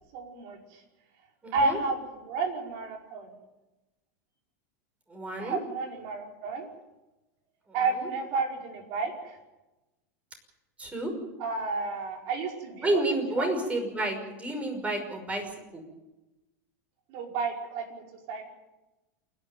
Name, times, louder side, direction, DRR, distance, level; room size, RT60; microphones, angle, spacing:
voice 1, 0.1-0.8 1.5-3.3 5.4-6.7 7.7-9.4 11.4-13.0 13.4-13.5 17.1-18.5, right 4 dB, 55° right, 2 dB, 5.1 m, -31 dB
voice 2, 1.4-1.8 5.1-5.6 8.0-8.1 10.8-11.1 12.8-15.8, right 1 dB, 15° right, 4 dB, 5.7 m, -30 dB
28.0 x 11.5 x 9.3 m, 1.0 s
supercardioid pair, 130°, 9 cm